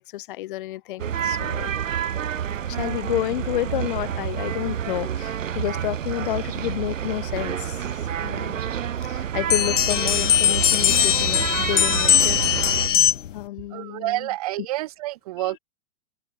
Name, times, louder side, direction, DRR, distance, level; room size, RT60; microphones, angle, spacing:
voice 1, 0.0-1.7 2.7-7.9 8.2-8.6 9.0-12.4 13.3-14.3 15.4-15.6, left 16 dB, 40° left, 3.6 m, -30 dB
sound 1, 1.0-12.9, right 9 dB, 70° right, 6.9 m, -28 dB
sound 2, 9.5-13.4, left 10 dB, 65° left, 1.9 m, -20 dB
voice 2, 13.7-15.6, right 17 dB, 30° right, 1.1 m, -28 dB
open air
hypercardioid pair, 170°, 39 cm